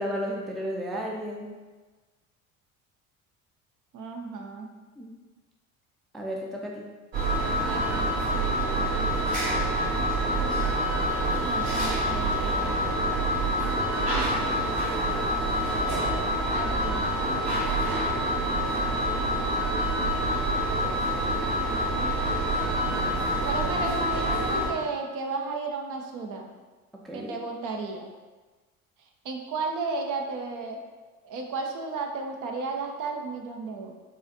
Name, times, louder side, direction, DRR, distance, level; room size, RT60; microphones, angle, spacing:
voice 1, 0.0-1.5 5.0-5.1 6.1-6.8 27.0-27.4, equal, ahead, -2 dB, 0.4 m, -33 dB
voice 2, 3.9-4.7 7.6-8.1 11.4-12.9 16.5-17.1 23.4-26.5 27.1-28.1 29.2-30.8 31.2-33.9, right 4 dB, 50° right, 3 dB, 0.6 m, -33 dB
sound 1, 7.1-24.7, right 1 dB, 65° right, 1.5 m, -26 dB
4.8 x 2.4 x 2.7 m, 1.3 s
figure-of-eight pair, 60°, 42 cm